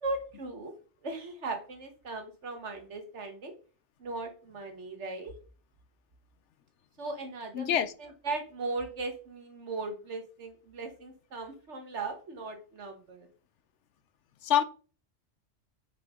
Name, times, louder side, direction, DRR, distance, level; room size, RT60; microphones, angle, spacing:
voice 1, 0.0-0.7 1.0-3.5 4.0-5.3 7.0-13.3, right 3 dB, 80° right, 1.7 m, -38 dB
voice 2, 7.5-7.9 14.4-14.6, left 10 dB, 90° left, 1.0 m, -25 dB
9.0 x 5.7 x 3.7 m
omnidirectional pair, 1.2 m